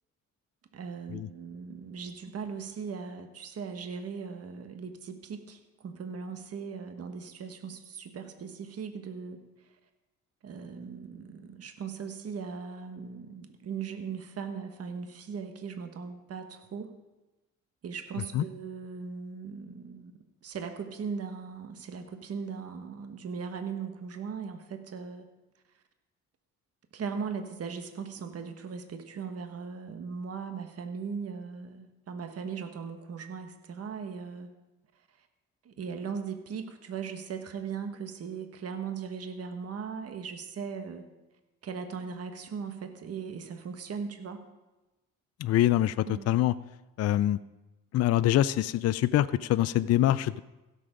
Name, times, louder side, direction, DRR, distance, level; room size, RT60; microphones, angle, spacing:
voice 1, 0.7-9.4 10.4-17.0 17.8-25.3 26.9-34.5 35.6-41.1 41.6-44.4 46.1-46.4, right 6 dB, 55° right, 7 dB, 1.3 m, -38 dB
voice 2, 45.4-46.5 47.0-47.4 47.9-50.4, left 13 dB, 55° left, 15 dB, 0.4 m, -24 dB
16.0 x 6.9 x 5.1 m, 1.0 s
cardioid pair, 90°, 30 cm